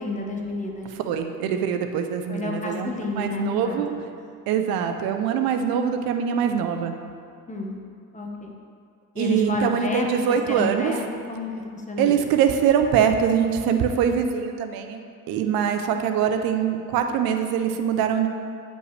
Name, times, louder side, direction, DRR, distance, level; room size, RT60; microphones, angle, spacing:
voice 1, 0.0-0.9 2.3-3.9 7.5-7.8 8.1-8.5 9.1-11.0 11.3-12.2, left 2 dB, 20° left, 0 dB, 1.2 m, -30 dB
voice 2, 1.0-2.9 3.2-3.9 4.5-6.9 9.2-11.0 12.0-15.0 15.3-18.3, right 8 dB, 90° right, 6 dB, 0.6 m, -23 dB
9.5 x 5.3 x 3.2 m, 2.3 s
cardioid pair, 85°, 35 cm